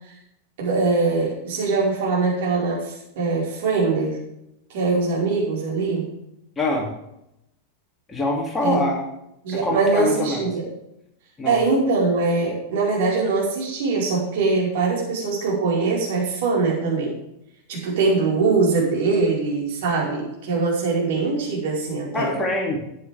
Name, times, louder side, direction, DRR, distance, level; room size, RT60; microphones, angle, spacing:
voice 1, 0.6-4.2 4.7-6.0 8.6-8.8 9.4-10.7 11.4-17.1 17.7-22.3, right 3 dB, 55° right, -3 dB, 4.8 m, -22 dB
voice 2, 6.6-6.9 8.1-9.0 9.6-10.4 11.4-11.6 22.1-22.8, left 2 dB, 15° left, 0 dB, 2.6 m, -24 dB
12.5 x 9.1 x 3.5 m, 0.81 s
figure-of-eight pair, 90°, 0 cm